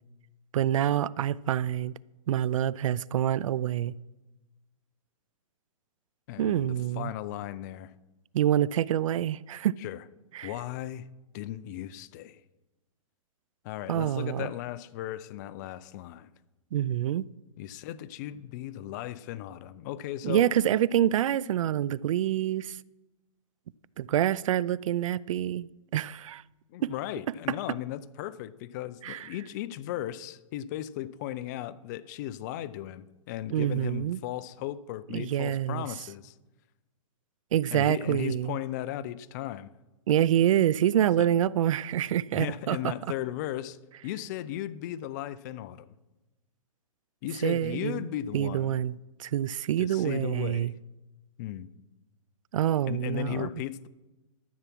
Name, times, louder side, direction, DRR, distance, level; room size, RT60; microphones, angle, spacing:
voice 1, 0.5-1.9 2.3-3.9 6.4-7.1 8.3-9.8 10.3-10.5 13.9-14.5 16.7-17.3 20.2-22.8 24.0-26.4 26.8-26.9 29.0-29.3 33.5-34.2 35.1-35.8 37.5-38.6 40.1-42.9 47.4-48.0 48.3-48.9 49.2-50.7 52.5-53.5, right 11 dB, 65° right, 0.4 m, -26 dB
voice 2, 6.3-7.9 9.8-10.0 10.4-11.1 11.3-12.4 13.6-16.3 17.6-20.5 26.7-36.4 37.7-39.7 41.2-41.3 42.3-43.8 44.0-45.9 47.2-48.8 49.8-50.8 51.4-51.7 52.9-53.9, left 13 dB, 30° left, 0.4 m, -36 dB
13.0 x 7.0 x 6.0 m
hypercardioid pair, 155°, 18 cm